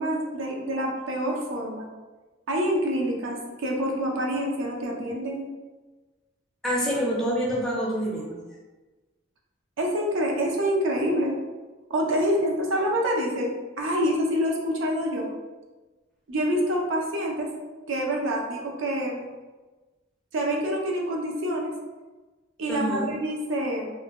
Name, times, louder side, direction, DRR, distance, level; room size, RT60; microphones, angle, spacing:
voice 1, 0.0-1.9 2.5-5.5 9.8-11.3 11.9-15.3 16.3-17.5 17.9-19.3 20.3-21.7 22.6-23.9, equal, 75° right, 0 dB, 0.5 m, -26 dB
voice 2, 6.6-8.4 22.7-23.1, equal, ahead, -5 dB, 0.4 m, -26 dB
2.5 x 2.1 x 2.9 m, 1.2 s
head